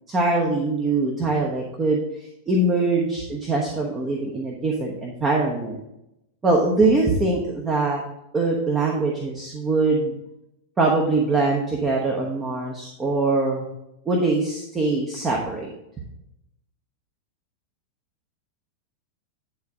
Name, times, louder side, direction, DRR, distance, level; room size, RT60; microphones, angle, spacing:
voice 1, 0.1-5.8 6.4-8.0 8.3-10.1 10.8-13.7 14.1-15.7, right 3 dB, 20° right, -1 dB, 1.0 m, -23 dB
9.4 x 3.8 x 4.8 m, 0.86 s
figure-of-eight pair, 90°, 0 cm